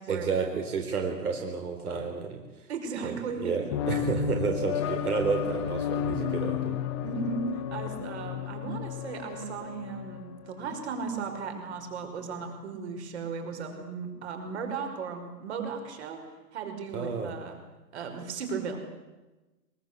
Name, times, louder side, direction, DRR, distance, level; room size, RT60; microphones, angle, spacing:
voice 1, 0.1-2.7 3.0-6.8 16.9-17.3, right 5 dB, 65° right, 4 dB, 4.2 m, -31 dB
voice 2, 2.7-3.5 7.0-16.2 16.5-17.6 17.9-18.8, right 5 dB, 40° right, 5 dB, 5.5 m, -36 dB
sound 1, 3.7-11.0, left 8 dB, 20° left, 1.1 m, -33 dB
23.5 x 23.5 x 8.2 m, 1.1 s
hypercardioid pair, 165°, 48 cm